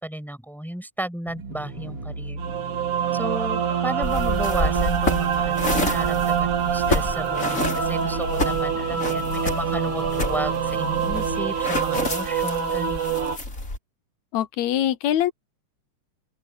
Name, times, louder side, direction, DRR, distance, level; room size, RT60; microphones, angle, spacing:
voice 1, 0.0-2.4 3.1-13.2, right 1 dB, ahead, 5.9 m, -33 dB
sound 1, 1.3-12.0, right 2 dB, 50° right, 5.5 m, -36 dB
sound 2, 2.4-13.4, right 8 dB, 85° right, 4.1 m, -25 dB
sound 3, 4.0-13.8, left 2 dB, 25° left, 4.8 m, -29 dB
voice 2, 14.3-15.3, left 11 dB, 75° left, 2.1 m, -23 dB
open air
omnidirectional pair, 3.4 m